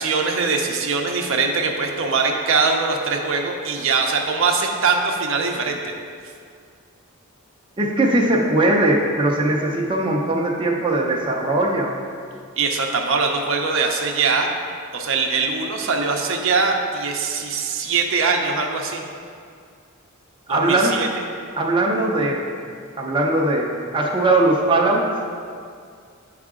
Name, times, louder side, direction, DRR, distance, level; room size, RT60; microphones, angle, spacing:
voice 1, 0.0-5.9 12.6-14.5 14.9-19.0 20.5-21.1, right 4 dB, 65° right, 2 dB, 0.7 m, -22 dB
voice 2, 7.8-12.0 20.5-20.9 21.6-22.4 23.0-23.7 23.9-25.0, right 2 dB, 25° right, -2 dB, 0.6 m, -19 dB
8.8 x 4.8 x 3.7 m, 2.2 s
head